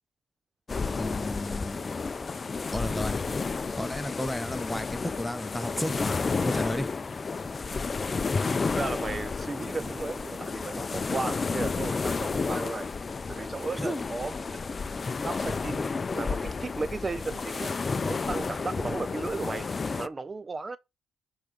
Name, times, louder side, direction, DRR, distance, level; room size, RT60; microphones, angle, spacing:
sound 1, 0.7-20.1, left 4 dB, 30° left, 0.5 m, -31 dB
voice 1, 1.0-1.8 2.7-3.2 3.8-6.9 13.8-14.1, left 1 dB, 5° left, 0.8 m, -33 dB
voice 2, 8.6-12.9 13.3-14.6 15.2-15.9 16.1-17.7 18.1-19.7 20.0-20.8, right 3 dB, 30° right, 0.4 m, -35 dB
9.7 x 3.7 x 5.2 m
cardioid pair, 90°, 0 cm